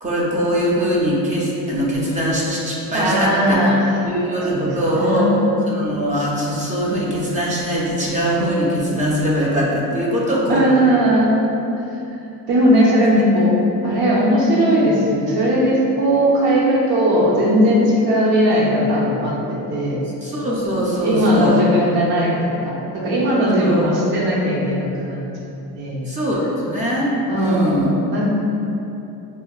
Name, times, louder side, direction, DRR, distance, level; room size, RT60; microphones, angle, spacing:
voice 1, 0.0-3.6 4.0-5.3 5.7-10.7 20.2-21.6 23.6-23.8 26.1-27.9, equal, 20° right, -5 dB, 0.4 m, -21 dB
voice 2, 2.9-4.0 4.5-5.4 10.5-11.6 12.5-13.5 13.8-20.0 21.0-25.2 25.7-26.0 27.3-28.3, equal, 70° right, -4 dB, 0.8 m, -18 dB
4.3 x 2.1 x 2.3 m, 2.9 s
cardioid pair, 140°, 37 cm